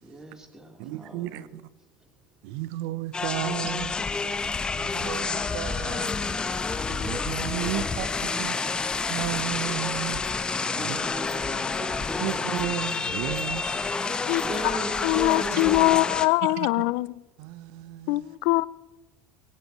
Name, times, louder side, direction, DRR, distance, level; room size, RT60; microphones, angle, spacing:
voice 1, 0.0-1.6 3.6-5.3 7.7-9.0 10.7-12.3 14.3-16.2, right 2 dB, 15° right, 3.4 m, -40 dB
voice 2, 0.8-1.6 2.4-4.1 4.8-6.3 6.9-8.1 8.4-8.6 9.1-10.2 10.8-11.0 12.2-13.8 16.5-16.7 17.4-18.2, right 15 dB, 70° right, 0.7 m, -33 dB
sound 1, 3.1-16.3, left 4 dB, 20° left, 0.9 m, -29 dB
voice 3, 15.0-17.2 18.1-18.7, left 21 dB, 70° left, 0.4 m, -23 dB
18.5 x 17.0 x 3.1 m
supercardioid pair, 90°, 4 cm